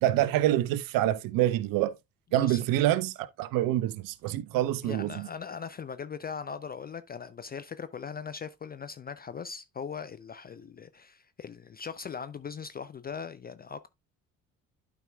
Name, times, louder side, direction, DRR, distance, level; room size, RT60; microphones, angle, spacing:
voice 1, 0.0-1.9 2.3-5.3, right 13 dB, 55° right, 0.7 m, -26 dB
voice 2, 4.5-13.9, left 6 dB, 25° left, 0.5 m, -40 dB
12.0 x 4.9 x 2.3 m
figure-of-eight pair, 50°, 40 cm